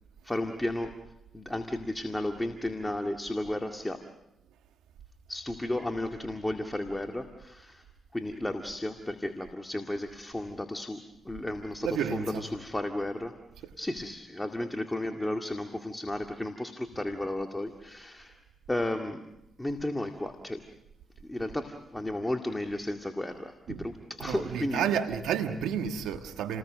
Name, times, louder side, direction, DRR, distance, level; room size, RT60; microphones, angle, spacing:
voice 1, 0.2-1.0 1.3-4.0 5.3-7.8 8.1-13.4 13.8-18.4 18.7-19.3 19.6-20.6 21.3-24.9, left 1 dB, 15° left, 4 dB, 2.1 m, -33 dB
voice 2, 11.8-12.4 13.6-13.7 23.7-23.9 24.2-26.6, right 8 dB, 85° right, 6 dB, 1.5 m, -31 dB
29.5 x 20.0 x 6.4 m, 0.85 s
supercardioid pair, 50°, 0 cm